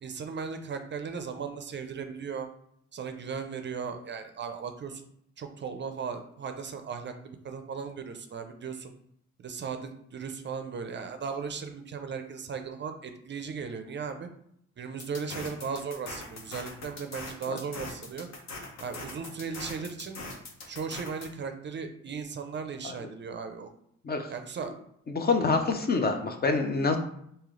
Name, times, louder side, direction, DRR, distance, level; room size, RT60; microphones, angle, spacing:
voice 1, 0.0-2.5 2.9-5.0 5.4-8.9 9.4-14.3 14.8-18.3 18.8-20.2 20.7-23.7 24.3-24.7, right 5 dB, 40° right, 7 dB, 0.5 m, -37 dB
sound 1, 15.0-21.3, left 2 dB, 60° left, 0.9 m, -41 dB
voice 2, 25.1-27.0, left 4 dB, 35° left, 6 dB, 0.5 m, -26 dB
3.1 x 2.8 x 3.7 m, 0.71 s
cardioid pair, 90°, 30 cm